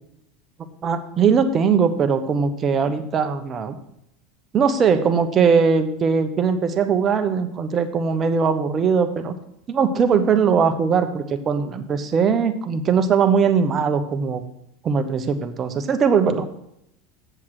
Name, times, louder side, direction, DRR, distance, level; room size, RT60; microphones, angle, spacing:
voice 1, 0.8-3.8 4.5-9.3 9.7-14.4 14.8-16.5, right 6 dB, 35° right, 8 dB, 1.1 m, -20 dB
7.8 x 7.2 x 6.3 m, 0.79 s
hypercardioid pair, 85°, 0 cm